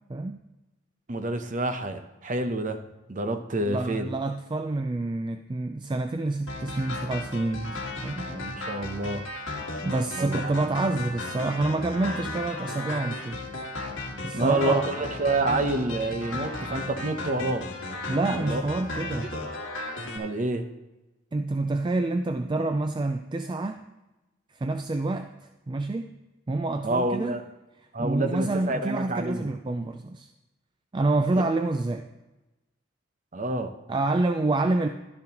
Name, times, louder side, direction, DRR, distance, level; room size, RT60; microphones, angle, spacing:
voice 1, 0.1-0.4 3.7-8.3 9.8-13.4 14.2-14.8 18.1-19.3 21.3-23.8 24.5-25.3 25.7-26.1 26.5-27.4 28.0-30.3 30.9-32.1 33.9-34.9, right 2 dB, 25° right, 7 dB, 0.3 m, -27 dB
voice 2, 1.1-2.8 3.1-4.1 8.2-9.3 10.2-10.5 14.3-17.7 18.3-18.6 19.3-19.4 20.1-20.7 26.8-27.4 27.9-29.5 33.3-33.7, right 2 dB, 40° right, 8 dB, 0.7 m, -28 dB
sound 1, 6.5-20.2, left 2 dB, 70° left, 1.8 m, -35 dB
12.0 x 10.5 x 2.9 m, 1.0 s
head